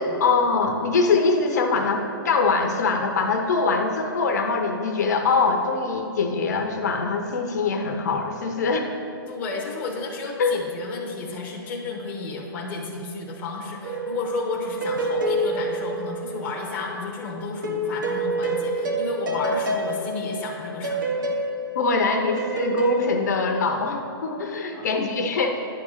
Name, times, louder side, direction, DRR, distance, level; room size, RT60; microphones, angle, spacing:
voice 1, 0.0-8.9 10.4-10.6 21.7-25.6, left 4 dB, 45° left, 4 dB, 0.7 m, -23 dB
voice 2, 9.3-21.0 24.7-24.9, left 3 dB, 10° left, -2 dB, 0.8 m, -32 dB
sound 1, 13.8-16.7 17.6-23.0, right 1 dB, 55° right, 1.1 m, -27 dB
10.0 x 3.8 x 6.4 m, 2.6 s
hypercardioid pair, 175°, 12 cm